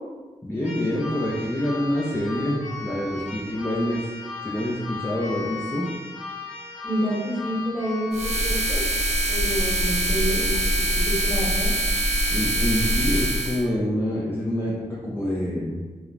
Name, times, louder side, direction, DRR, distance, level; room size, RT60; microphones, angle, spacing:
voice 1, 0.4-4.1 4.4-5.9 12.3-15.8, left 1 dB, 15° left, -5 dB, 0.4 m, -26 dB
Keyboard (musical), 0.6-8.4, left 4 dB, 65° left, 0.9 m, -36 dB
voice 2, 6.8-8.9 9.3-10.5 10.9-11.7, equal, 5° right, -7 dB, 1.1 m, -28 dB
sound 1, 8.1-13.6, right 1 dB, 55° right, 0.6 m, -23 dB
2.4 x 2.0 x 3.1 m, 1.3 s
cardioid pair, 80°, 13 cm